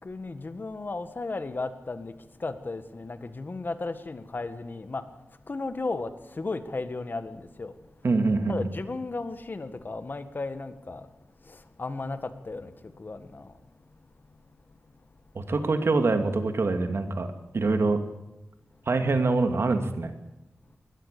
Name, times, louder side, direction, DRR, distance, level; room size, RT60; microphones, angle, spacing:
voice 1, 0.0-7.7 8.5-11.1 11.4-13.6, left 3 dB, 45° left, 10 dB, 1.8 m, -35 dB
voice 2, 8.0-8.6 15.3-17.3 17.5-18.0 18.9-20.1, right 3 dB, 65° right, 7 dB, 2.6 m, -24 dB
22.0 x 19.5 x 6.9 m, 0.97 s
wide cardioid pair, 95°, 5 cm